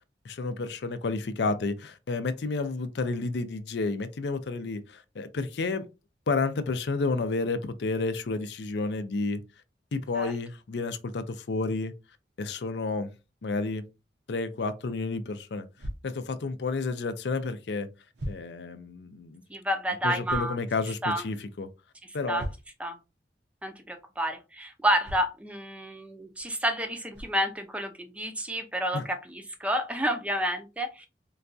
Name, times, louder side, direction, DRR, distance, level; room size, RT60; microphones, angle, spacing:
voice 1, 0.2-5.9 6.3-9.4 9.9-11.9 12.4-13.1 13.4-13.8 14.3-15.7 16.0-17.9 18.3-19.4 20.0-21.7 22.1-22.4 28.9-29.0, left 3 dB, 75° left, 0.5 m, -31 dB
sound 1, 15.8-16.0 17.4-17.5 18.1-18.5 20.2-20.6 22.4-22.8 25.0-25.3 26.4-26.5 27.1-27.4, equal, 80° right, 0.7 m, -37 dB
voice 2, 19.5-20.6 21.0-21.2 22.0-22.5 22.8-23.0 23.6-31.1, equal, 5° right, 0.4 m, -30 dB
3.8 x 2.2 x 2.5 m
head